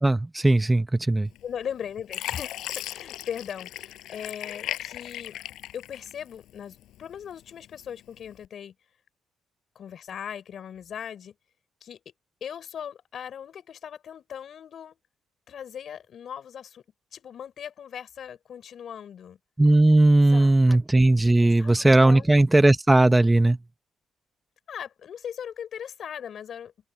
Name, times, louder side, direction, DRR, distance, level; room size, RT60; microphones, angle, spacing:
voice 1, 0.0-1.3 19.6-23.6, right 2 dB, 15° right, 1.1 m, -18 dB
Fill (with liquid), 1.4-1.7 2.1-6.5 6.9-7.8 8.3-8.5, left 13 dB, 85° left, 6.3 m, -37 dB
voice 2, 1.4-5.4 5.7-8.7 9.7-11.3 11.8-12.1 12.4-15.0 15.5-16.8 17.1-19.4 20.3-20.8 21.4-22.3 24.7-26.7, left 8 dB, 60° left, 6.4 m, -39 dB
open air
cardioid pair, 90°, 0 cm